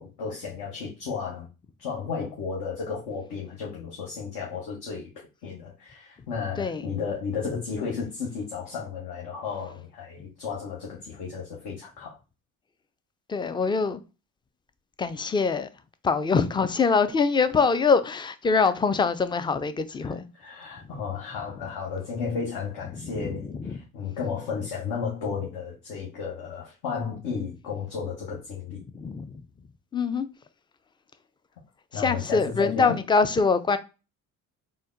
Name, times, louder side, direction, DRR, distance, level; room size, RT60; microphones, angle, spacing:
voice 1, 0.0-1.5 1.8-5.1 5.4-12.2 18.5-18.7 20.4-28.8 31.9-33.0, left 5 dB, 70° left, 1.3 m, -33 dB
voice 2, 6.6-6.9 13.3-14.0 15.0-15.7 16.0-20.3 21.6-21.7 22.9-23.8 28.9-29.4 29.9-30.3 31.9-33.8, left 4 dB, 15° left, 0.3 m, -24 dB
3.9 x 2.1 x 3.7 m
supercardioid pair, 75°, 38 cm